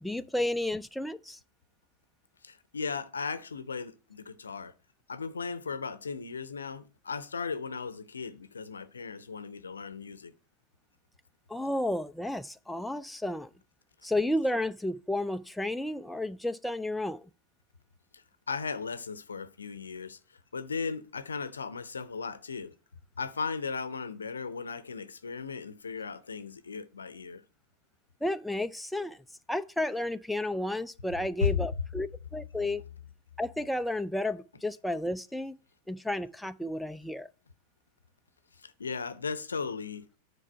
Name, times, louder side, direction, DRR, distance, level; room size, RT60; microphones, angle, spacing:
voice 1, 0.0-1.4 11.5-13.5 14.0-17.2 28.2-29.2 29.5-32.1 32.3-32.8 33.4-35.5 35.9-37.3, left 1 dB, ahead, 0.3 m, -32 dB
voice 2, 2.4-4.7 5.1-10.3 18.1-20.2 20.5-22.7 23.2-27.4 31.4-31.6 38.6-40.1, left 5 dB, 75° left, 0.6 m, -36 dB
9.8 x 4.6 x 4.5 m
figure-of-eight pair, 90°, 0 cm